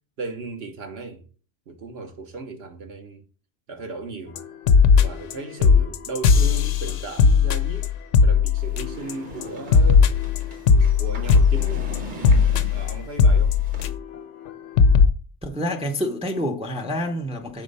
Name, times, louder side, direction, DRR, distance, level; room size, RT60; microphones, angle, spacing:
voice 1, 0.2-1.2 1.7-3.2 3.7-4.4 5.0-7.9 8.2-10.1 10.9-12.0 12.7-13.6, right 3 dB, 60° right, 1.3 m, -36 dB
sound 1, 4.4-4.5 4.7-5.3 5.6-9.1 9.4-14.2 14.5-14.6 14.8-15.1, left 5 dB, 90° left, 0.9 m, -17 dB
sound 2, 8.6-13.9, equal, 45° right, 1.3 m, -39 dB
voice 2, 15.4-17.6, equal, 5° right, 0.6 m, -27 dB
5.7 x 4.3 x 5.4 m
omnidirectional pair, 1.2 m